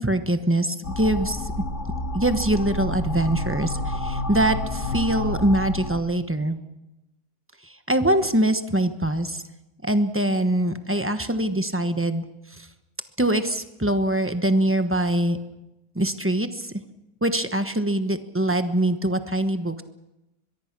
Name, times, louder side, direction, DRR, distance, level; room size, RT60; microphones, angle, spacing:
voice 1, 0.0-1.5 2.1-6.6 7.6-9.4 9.8-12.2 12.6-12.7 13.2-15.4 15.9-16.7 17.2-19.8, right 1 dB, 10° right, 9 dB, 1.0 m, -23 dB
sound 1, 0.8-6.0, left 2 dB, 55° left, 2.2 m, -29 dB
23.0 x 22.0 x 6.1 m, 0.95 s
omnidirectional pair, 1.5 m